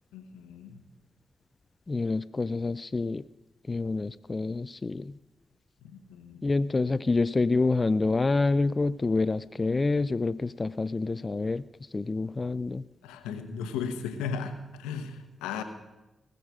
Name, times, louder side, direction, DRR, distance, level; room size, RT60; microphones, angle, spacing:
voice 1, 0.1-0.8 5.8-6.4 13.0-15.6, left 6 dB, 90° left, 8 dB, 1.0 m, -36 dB
voice 2, 1.9-3.2 3.7-5.1 6.4-11.6 11.9-12.8, left 3 dB, 35° left, 15 dB, 0.3 m, -27 dB
19.0 x 6.6 x 6.1 m, 1.0 s
hypercardioid pair, 40°, 0 cm